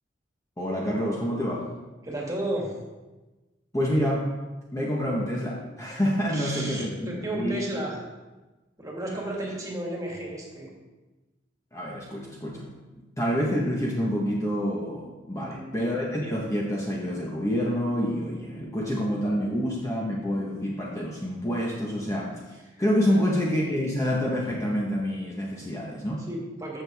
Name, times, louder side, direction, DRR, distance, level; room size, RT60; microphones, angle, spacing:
voice 1, 0.6-1.7 3.7-4.3 4.7-7.6 11.7-12.7 13.2-22.4 22.8-26.3, equal, 15° left, -3 dB, 1.1 m, -27 dB
voice 2, 2.0-2.8 6.3-8.0 8.8-10.7 15.4-15.8 22.7-23.3 23.7-23.9 26.2-26.8, right 1 dB, 20° right, -2 dB, 1.9 m, -34 dB
14.5 x 6.3 x 3.5 m, 1.2 s
head